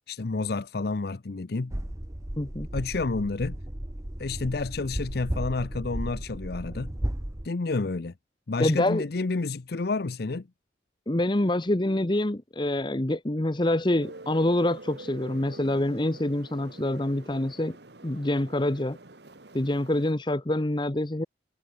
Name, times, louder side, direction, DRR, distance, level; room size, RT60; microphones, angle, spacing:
voice 1, 0.1-1.7 2.7-3.6 4.2-6.9 7.4-8.1 8.5-10.5, left 3 dB, 55° left, 0.6 m, -30 dB
sound 1, 1.7-7.5, right 1 dB, 15° right, 0.9 m, -34 dB
voice 2, 2.4-2.7 8.6-9.0 11.1-17.8 18.0-19.0 19.5-21.2, left 1 dB, 25° left, 0.9 m, -26 dB
sound 2, 14.0-20.1, right 2 dB, 60° right, 1.6 m, -46 dB
head